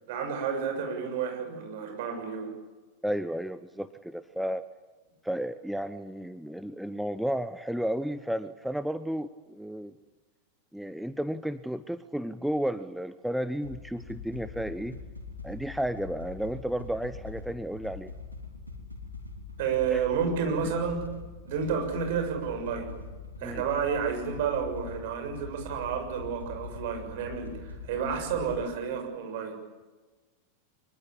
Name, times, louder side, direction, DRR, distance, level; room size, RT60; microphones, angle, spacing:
voice 1, 0.1-2.5 19.6-21.1 21.4-22.9 23.4-29.6, right 6 dB, 50° right, 4 dB, 6.8 m, -30 dB
voice 2, 3.0-4.6 5.2-9.9 10.7-15.0 15.4-18.1 19.9-20.0 20.5-20.7 21.1-21.2 23.4-23.6, equal, ahead, 12 dB, 0.8 m, -33 dB
sound 1, 13.6-28.6, left 4 dB, 90° left, 3.5 m, -43 dB
24.5 x 23.0 x 8.7 m, 1.3 s
figure-of-eight pair, 90°, 0 cm